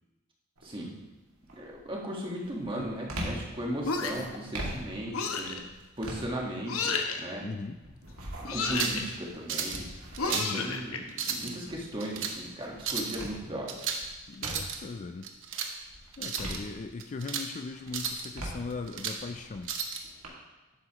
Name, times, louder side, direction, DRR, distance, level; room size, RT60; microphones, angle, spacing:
voice 1, 0.6-0.9 1.5-5.6 6.0-7.5 8.4-9.9 10.2-13.7, right 1 dB, 25° right, -2 dB, 1.5 m, -37 dB
sound 1, 0.6-1.0 1.4-15.0 15.4-17.3 17.7-20.3, right 1 dB, 75° right, 2.0 m, -43 dB
sound 2, 3.8-4.4 5.1-5.6 6.7-7.2 8.4-9.0 10.2-11.0, left 4 dB, 70° left, 0.9 m, -31 dB
voice 2, 7.4-7.8 10.3-10.7 14.3-15.3 16.2-19.7, left 3 dB, 35° left, 7 dB, 0.4 m, -39 dB
sound 3, 8.6-9.0 9.5-9.8 10.1-10.6 11.1-11.5 12.0-12.4 12.8-13.2 13.7-14.1 14.3-14.8 15.2-15.7 16.1-16.6 17.0-17.5 17.9-18.3 18.7-19.2 19.6-20.0, right 6 dB, 60° right, 0.9 m, -34 dB
11.0 x 8.2 x 3.0 m, 1.1 s
head